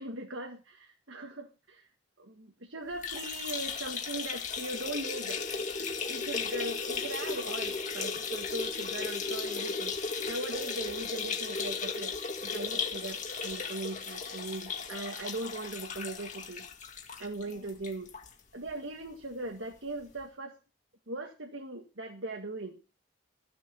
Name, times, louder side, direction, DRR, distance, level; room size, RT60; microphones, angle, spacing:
voice 1, 0.0-1.9 2.2-5.4 6.1-12.1 12.4-16.7 17.2-18.1 18.5-20.6 21.1-22.8, right 2 dB, 75° right, 2 dB, 1.8 m, -39 dB
sound 1, 2.9-18.3 18.7-18.8 19.1-19.2 20.2-20.3, left 5 dB, 40° left, 1.9 m, -36 dB
15.0 x 7.1 x 5.3 m, 0.33 s
head